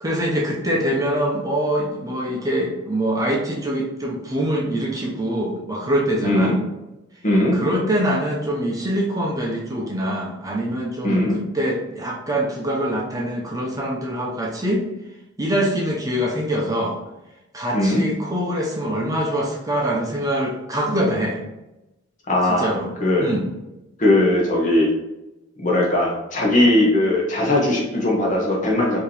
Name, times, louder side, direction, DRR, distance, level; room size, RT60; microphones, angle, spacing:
voice 1, 0.0-6.5 7.5-14.8 15.4-17.0 17.5-21.4 22.6-22.9 23.2-23.4, right 1 dB, 15° right, -2 dB, 0.7 m, -24 dB
voice 2, 6.2-6.6 7.2-7.6 11.0-11.4 17.7-18.0 22.3-22.7 23.0-23.3 24.0-24.9 25.6-29.0, left 1 dB, 40° left, -2 dB, 1.1 m, -19 dB
4.8 x 2.9 x 3.3 m, 0.95 s
head